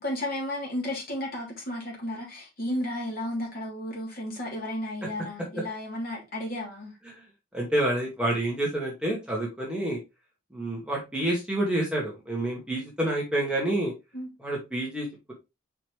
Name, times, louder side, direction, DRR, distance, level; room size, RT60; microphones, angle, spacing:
voice 1, 0.0-6.9 14.1-14.3, left 1 dB, 45° left, 3.1 m, -33 dB
voice 2, 7.5-10.0 10.5-13.9 14.4-15.3, right 1 dB, 5° right, 1.9 m, -28 dB
5.7 x 4.8 x 3.4 m
head